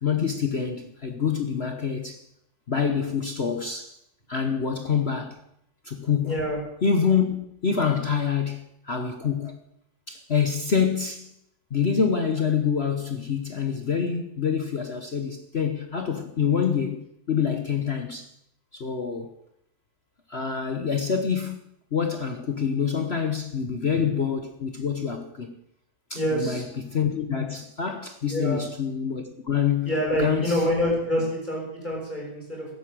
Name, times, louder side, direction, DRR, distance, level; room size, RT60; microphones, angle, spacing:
voice 1, 0.0-2.2 2.7-4.0 4.3-5.4 5.8-6.4 6.8-9.6 10.1-11.3 11.7-18.3 18.7-19.3 20.3-21.6 21.9-25.6 26.1-29.9 30.2-30.6, left 6 dB, 40° left, 1.1 m, -26 dB
voice 2, 6.2-6.6 23.6-24.1 26.1-26.6 28.3-28.6 29.8-32.7, equal, 25° left, 6.5 m, -27 dB
14.5 x 11.0 x 7.6 m
omnidirectional pair, 2.0 m